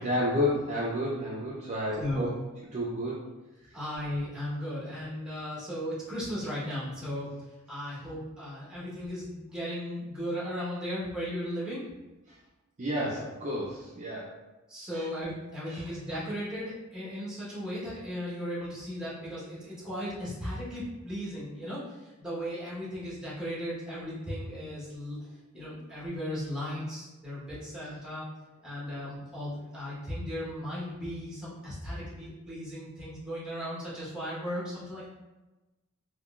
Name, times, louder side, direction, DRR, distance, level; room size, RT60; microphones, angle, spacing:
voice 1, 0.0-2.3 2.7-3.2 3.6-3.8 12.3-12.4 12.8-14.3 14.9-15.1 15.7-15.9 25.6-25.8, left 1 dB, 35° right, -6 dB, 0.5 m, -31 dB
voice 2, 1.9-2.3 3.7-7.3 7.7-11.8 14.7-21.9 22.2-25.2 25.5-28.3 28.6-35.1, equal, 5° right, -8 dB, 1.0 m, -36 dB
3.8 x 2.2 x 2.3 m, 1.1 s
head